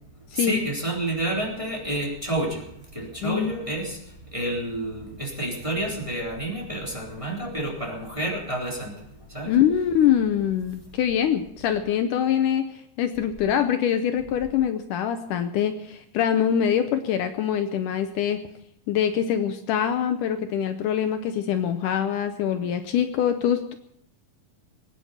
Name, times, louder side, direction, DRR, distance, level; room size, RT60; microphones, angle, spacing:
voice 1, 0.3-9.5, right 1 dB, 10° right, -3 dB, 3.2 m, -30 dB
voice 2, 3.2-3.5 9.5-18.4 18.9-23.7, left 9 dB, 75° left, 8 dB, 2.2 m, -24 dB
21.0 x 9.6 x 6.6 m, 0.76 s
omnidirectional pair, 3.9 m